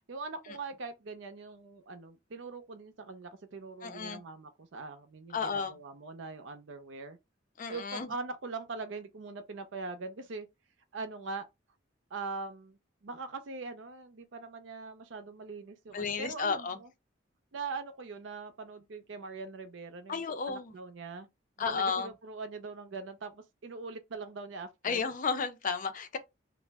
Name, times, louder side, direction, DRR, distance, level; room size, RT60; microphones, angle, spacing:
voice 1, 0.1-7.2 7.7-10.5 10.9-11.4 12.1-16.9 17.5-21.3 21.6-25.0, right 3 dB, 75° right, 0.5 m, -42 dB
voice 2, 3.8-4.2 5.3-5.7 7.6-8.1 15.9-16.8 20.1-20.7 21.6-22.1 24.8-26.2, left 5 dB, 45° left, 0.4 m, -32 dB
2.4 x 2.0 x 3.3 m
head